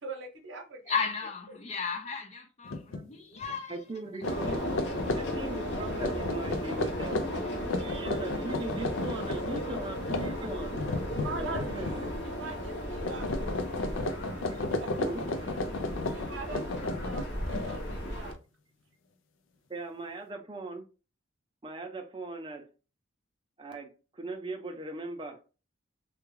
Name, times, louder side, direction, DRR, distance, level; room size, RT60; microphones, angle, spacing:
voice 1, 0.0-0.9 1.5-1.6 11.1-11.9 12.2-13.3 14.6-14.9 16.1-18.3, right 3 dB, 70° right, 0.8 m, -42 dB
voice 2, 0.9-3.7 4.2-4.5, left 5 dB, 35° left, 0.4 m, -35 dB
sound 1, 2.7-3.0 3.4-3.5 4.1-12.1 12.4-12.7 13.0-18.1, left 2 dB, 90° left, 0.5 m, -34 dB
voice 3, 3.7-4.5 5.0-10.8 11.4-12.2 14.5-14.6 14.9-15.2 19.7-20.8 21.6-22.7 23.6-25.4, right 2 dB, 25° right, 0.5 m, -39 dB
sound 2, 4.2-18.3, equal, 65° left, 1.0 m, -36 dB
3.4 x 2.3 x 3.1 m
head